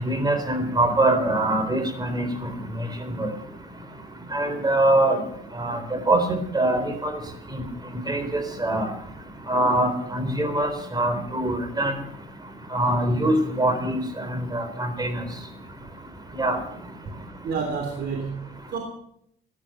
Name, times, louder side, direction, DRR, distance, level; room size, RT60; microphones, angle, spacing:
voice 1, 0.0-2.3 3.2-3.3 4.3-5.2 5.6-5.8 6.1-7.1 7.5-7.6 8.1-8.9 9.5-11.9 12.7-15.2 16.4-16.6, right 1 dB, 20° right, 8 dB, 3.9 m, -23 dB
voice 2, 17.4-18.8, right 5 dB, 55° right, 2 dB, 3.3 m, -29 dB
16.5 x 11.5 x 5.8 m, 0.71 s
cardioid pair, 100°, 20 cm